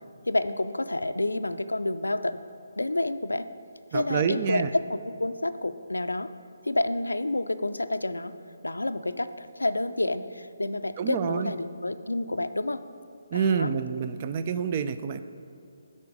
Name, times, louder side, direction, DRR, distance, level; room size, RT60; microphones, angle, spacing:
voice 1, 0.3-2.4 2.8-3.5 3.9-4.6 4.9-6.3 6.6-8.3 8.6-12.8 13.3-13.7, left 2 dB, 90° left, 12 dB, 0.4 m, -29 dB
voice 2, 3.9-4.7 11.0-11.5 13.3-15.2, right 6 dB, 35° right, 10 dB, 0.4 m, -27 dB
11.5 x 4.3 x 4.9 m, 2.5 s
figure-of-eight pair, 150°, 0 cm